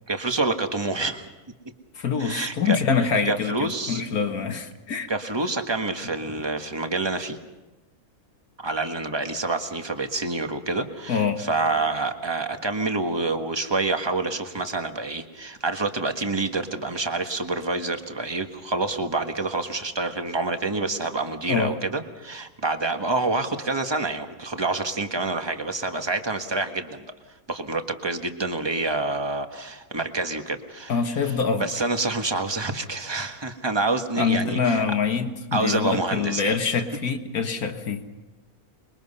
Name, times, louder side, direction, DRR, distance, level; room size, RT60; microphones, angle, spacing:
voice 1, 0.1-1.2 2.2-4.0 5.1-7.4 8.6-27.1 27.5-31.3 31.6-34.8 35.5-36.5, right 3 dB, 15° right, 5 dB, 1.5 m, -27 dB
voice 2, 2.0-5.1 11.1-11.4 21.5-21.7 30.9-31.7 34.2-38.1, left 5 dB, 70° left, 6 dB, 2.1 m, -25 dB
27.5 x 22.5 x 5.6 m, 1.1 s
omnidirectional pair, 1.6 m